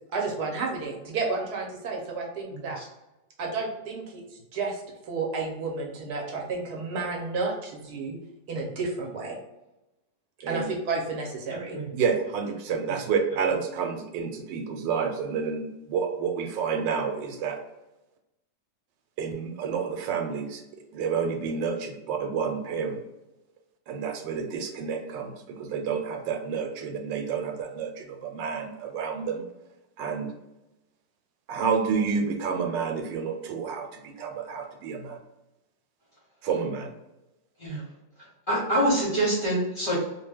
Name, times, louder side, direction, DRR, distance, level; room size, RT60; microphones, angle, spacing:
voice 1, 0.1-2.8 3.4-4.2 4.5-8.2 8.5-9.4 10.5-11.8, right 3 dB, 70° right, -1 dB, 1.1 m, -31 dB
voice 2, 11.9-17.6 19.2-20.6 20.9-23.0 23.9-29.4 30.0-30.3 31.5-35.2 36.4-36.9, right 6 dB, 85° right, 4 dB, 1.2 m, -29 dB
voice 3, 38.5-39.9, right 1 dB, 45° left, -7 dB, 0.7 m, -25 dB
2.8 x 2.1 x 3.3 m, 0.96 s
omnidirectional pair, 1.9 m